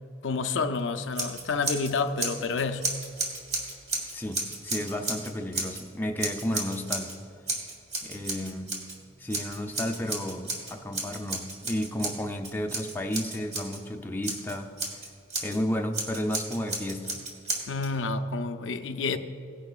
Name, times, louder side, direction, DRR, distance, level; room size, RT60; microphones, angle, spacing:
voice 1, 0.2-2.8 17.7-19.2, left 4 dB, 85° left, 8 dB, 0.6 m, -29 dB
Scissors, 1.1-1.9 2.2-5.8 6.2-7.2 7.5-9.0 9.3-13.8 14.2-15.6 15.9-17.9, right 2 dB, 35° right, 1.7 m, -33 dB
voice 2, 4.1-7.2 8.0-8.8 9.2-14.7 15.4-17.2, left 1 dB, 10° left, 2 dB, 0.6 m, -32 dB
17.5 x 10.5 x 2.4 m, 2.6 s
head